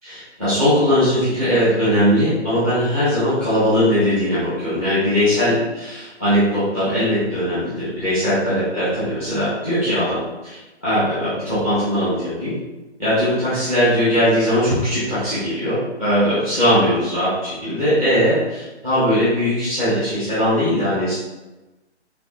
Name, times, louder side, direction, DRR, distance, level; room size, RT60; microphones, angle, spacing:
voice 1, 0.0-12.6 13.0-21.2, equal, 10° left, -13 dB, 0.6 m, -20 dB
3.3 x 3.1 x 2.5 m, 1.1 s
hypercardioid pair, 160°, 35 cm